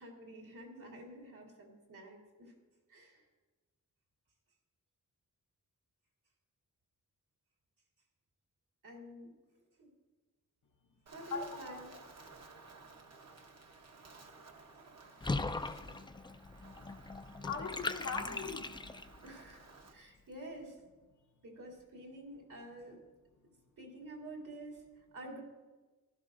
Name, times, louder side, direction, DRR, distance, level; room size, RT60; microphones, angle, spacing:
voice 1, 0.0-2.5 2.9-3.2 8.8-9.3 9.8-9.9 11.1-11.9 19.2-20.8 21.4-23.0 23.8-25.4, right 1 dB, 75° right, -2 dB, 3.0 m, -49 dB
Wind, 11.1-19.9, right 4 dB, 55° right, 1.0 m, -56 dB
voice 2, 11.3-12.0 16.8-16.9 17.4-18.7, left 5 dB, 65° left, -1 dB, 0.9 m, -41 dB
Water / Bathtub (filling or washing), 15.2-19.3, left 3 dB, 15° left, 0.4 m, -39 dB
15.5 x 12.0 x 2.6 m, 1.2 s
wide cardioid pair, 115°, 32 cm